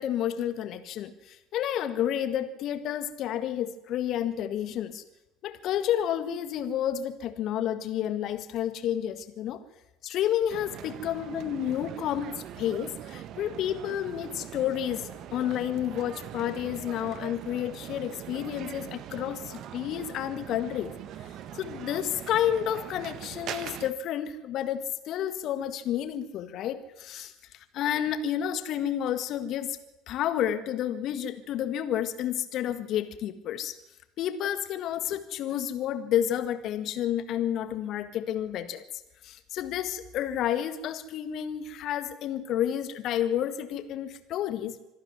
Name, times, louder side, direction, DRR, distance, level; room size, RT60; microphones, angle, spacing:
voice 1, 0.0-5.0 5.4-9.6 10.0-20.9 21.2-21.3 21.5-29.8 30.1-33.8 34.2-38.8 39.2-44.8, left 10 dB, 50° left, 11 dB, 1.7 m, -30 dB
sound 1, 10.5-23.9, right 11 dB, 50° right, 1.4 m, -42 dB
25.5 x 12.0 x 9.6 m, 0.96 s
figure-of-eight pair, 65°, 0 cm